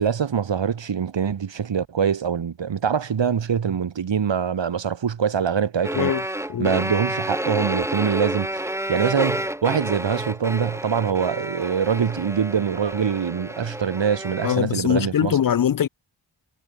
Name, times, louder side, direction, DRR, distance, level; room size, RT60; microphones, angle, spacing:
voice 1, 0.0-15.4, right 7 dB, 70° right, 1.4 m, -24 dB
sound 1, 5.8-14.7, right 1 dB, 5° right, 2.4 m, -30 dB
voice 2, 14.4-15.9, left 9 dB, 50° left, 0.4 m, -22 dB
wide cardioid pair, 75°, 46 cm